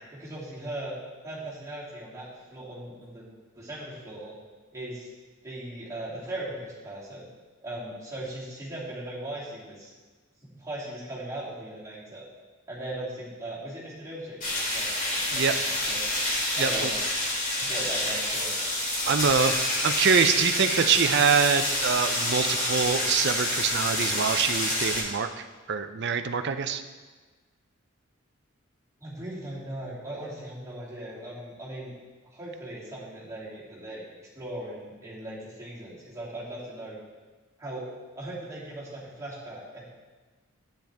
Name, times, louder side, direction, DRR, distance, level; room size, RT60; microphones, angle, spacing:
voice 1, 0.1-0.9 1.2-3.3 3.6-4.4 4.7-5.1 5.4-7.2 7.6-9.9 10.4-12.2 12.7-16.1 16.6-17.0 17.6-18.6 29.0-31.9 32.2-37.0 37.6-37.9 38.1-39.9, right 1 dB, 15° right, -9 dB, 2.9 m, -38 dB
sound 1, 14.4-25.0, left 1 dB, 45° left, 3.3 m, -28 dB
voice 2, 16.6-16.9 19.1-26.8, right 6 dB, 55° right, 9 dB, 0.5 m, -25 dB
10.0 x 8.8 x 3.5 m, 1.3 s
head